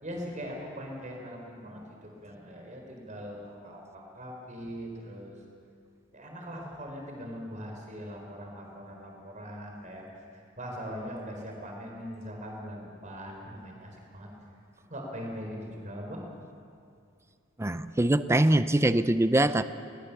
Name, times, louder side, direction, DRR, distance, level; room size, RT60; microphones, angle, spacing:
voice 1, 0.0-5.3 6.1-14.3 14.9-16.3, equal, 35° right, 1 dB, 4.3 m, -41 dB
voice 2, 17.6-19.6, right 1 dB, 15° right, 13 dB, 0.5 m, -23 dB
21.0 x 19.0 x 7.1 m, 2.3 s
head